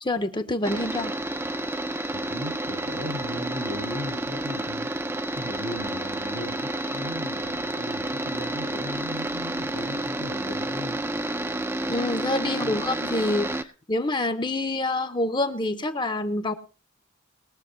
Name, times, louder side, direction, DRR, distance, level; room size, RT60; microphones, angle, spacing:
voice 1, 0.1-1.1 11.9-13.5 13.9-16.5, left 2 dB, 20° left, 10 dB, 0.9 m, -26 dB
sound 1, 0.6-13.6, right 1 dB, 10° right, 0.6 m, -30 dB
voice 2, 2.1-4.9 5.3-11.0 12.6-12.8, left 1 dB, 90° right, 4 dB, 7.1 m, -37 dB
21.0 x 7.1 x 4.5 m, 0.36 s
head